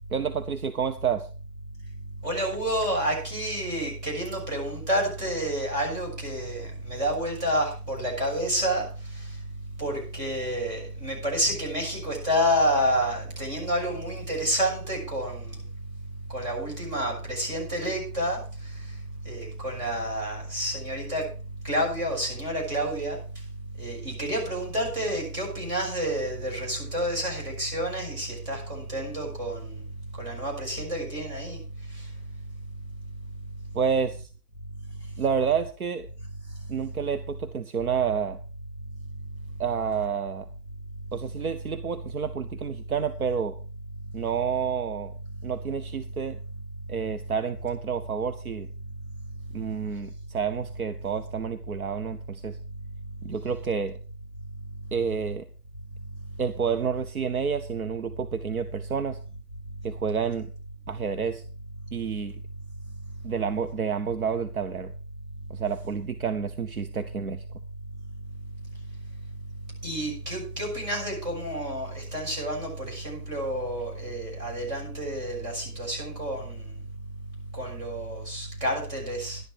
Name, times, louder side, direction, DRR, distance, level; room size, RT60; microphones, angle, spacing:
voice 1, 0.1-1.3 33.7-34.3 35.2-36.1 36.7-38.4 39.6-40.5 41.1-43.5 44.1-45.1 45.4-46.4 46.9-48.7 49.5-52.6 53.2-54.0 54.9-55.4 56.4-59.2 59.8-60.5 60.9-61.4 61.9-62.3 63.2-64.9 65.5-67.4, right 6 dB, 65° right, 10 dB, 1.0 m, -29 dB
voice 2, 2.2-8.8 9.8-15.5 16.3-18.4 19.2-21.2 21.6-23.2 23.8-29.7 30.2-31.6 69.8-76.6 77.6-79.4, equal, 25° right, -3 dB, 6.4 m, -29 dB
11.5 x 10.5 x 4.7 m, 0.35 s
hypercardioid pair, 165°, 47 cm